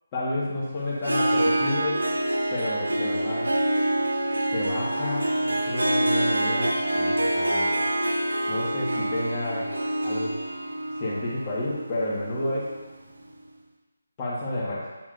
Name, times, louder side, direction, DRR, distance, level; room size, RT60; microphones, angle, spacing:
voice 1, 0.1-2.0 2.5-3.5 4.5-7.7 8.5-9.7 10.0-10.4 11.0-12.7 14.2-14.9, left 1 dB, 25° left, -9 dB, 1.6 m, -30 dB
Harp, 1.0-12.8, right 1 dB, 90° right, 0.8 m, -26 dB
7.2 x 6.2 x 2.6 m, 1.2 s
figure-of-eight pair, 160°, 0 cm